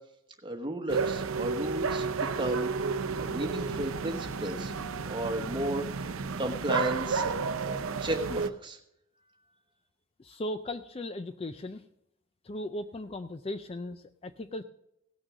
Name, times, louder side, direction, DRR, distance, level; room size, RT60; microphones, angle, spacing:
voice 1, 0.4-2.7 3.2-4.7 5.0-8.8, right 1 dB, 20° right, 4 dB, 1.2 m, -34 dB
sound 1, 0.9-8.5, right 5 dB, 70° right, 0.6 m, -32 dB
voice 2, 10.2-11.8 12.4-14.6, left 1 dB, 25° left, 10 dB, 0.4 m, -37 dB
17.0 x 6.3 x 6.2 m, 0.82 s
head